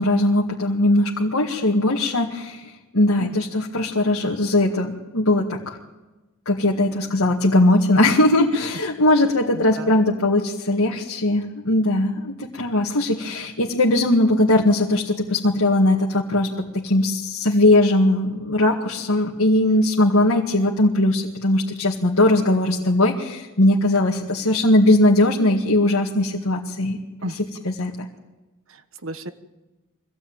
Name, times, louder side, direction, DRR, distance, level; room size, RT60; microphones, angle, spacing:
voice 1, 0.0-5.8 6.5-27.0 27.6-28.1, left 1 dB, 85° left, -2 dB, 1.9 m, -19 dB
voice 2, 9.5-10.0 27.2-27.4 27.8-27.9 28.7-29.3, right 1 dB, 65° right, 10 dB, 1.3 m, -34 dB
24.5 x 17.0 x 9.0 m, 1.1 s
head